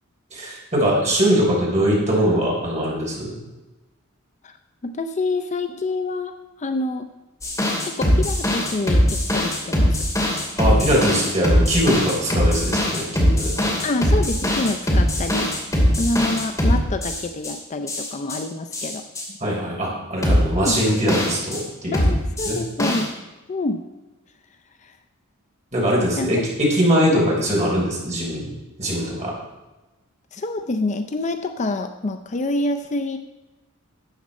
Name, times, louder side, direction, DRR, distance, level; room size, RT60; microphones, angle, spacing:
voice 1, 0.3-3.3 10.6-13.7 19.4-22.0 22.5-22.6 25.7-28.5 28.8-29.3, equal, 35° right, -4 dB, 3.9 m, -21 dB
voice 2, 4.8-7.1 7.9-10.0 13.8-19.0 19.3-19.4 20.6-20.8 21.9-23.1 23.5-23.8 24.8-25.0 26.2-26.3 27.1-27.2 30.3-33.2, left 2 dB, 35° left, 8 dB, 0.5 m, -27 dB
sound 1, 7.4-17.5 17.9-18.4 18.7-19.2 20.2-21.6 21.9-23.0, equal, 15° left, 2.4 m, -21 dB
12.5 x 8.4 x 4.2 m, 1.1 s
head